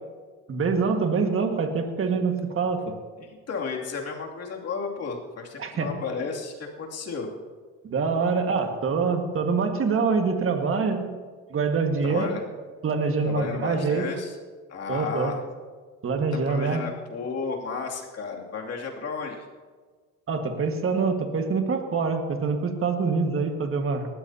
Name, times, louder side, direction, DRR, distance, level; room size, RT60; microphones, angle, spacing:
voice 1, 0.5-3.0 5.6-5.9 7.8-11.1 11.5-12.3 12.8-14.1 14.9-15.3 16.0-16.8 20.3-24.1, right 4 dB, 40° right, 5 dB, 1.8 m, -25 dB
voice 2, 3.2-7.3 12.0-12.4 13.2-14.3 14.7-15.4 16.5-19.5, left 5 dB, 50° left, -1 dB, 2.7 m, -33 dB
19.0 x 13.5 x 2.8 m, 1.5 s
supercardioid pair, 85°, 33 cm